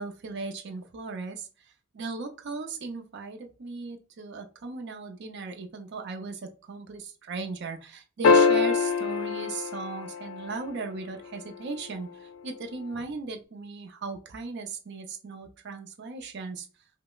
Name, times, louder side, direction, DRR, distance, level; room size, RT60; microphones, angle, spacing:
voice 1, 0.0-16.7, right 4 dB, 60° right, 4 dB, 0.5 m, -37 dB
sound 1, 8.2-10.8 13.0-13.1, left 5 dB, 80° left, 0.4 m, -23 dB
5.0 x 2.0 x 2.3 m, 0.36 s
head